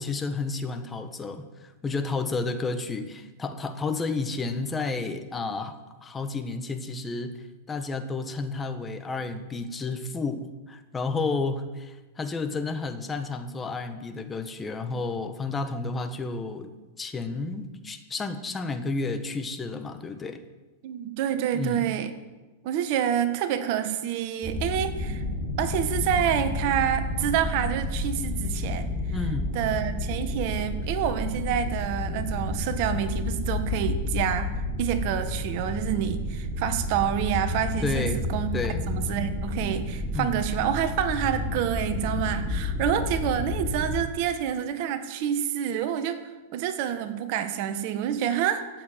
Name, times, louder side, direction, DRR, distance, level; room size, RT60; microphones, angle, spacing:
voice 1, 0.0-20.4 21.5-21.9 29.1-29.5 37.8-38.2 38.5-38.8 40.1-40.4, left 3 dB, 20° left, 8 dB, 1.4 m, -31 dB
voice 2, 20.8-22.1 22.6-25.2 25.6-28.9 29.5-38.5 38.9-46.2 46.5-48.8, right 10 dB, 55° right, 9 dB, 1.5 m, -28 dB
sound 1, 24.4-44.0, left 2 dB, 10° right, 4.3 m, -30 dB
15.5 x 7.8 x 9.3 m, 1.2 s
hypercardioid pair, 115°, 0 cm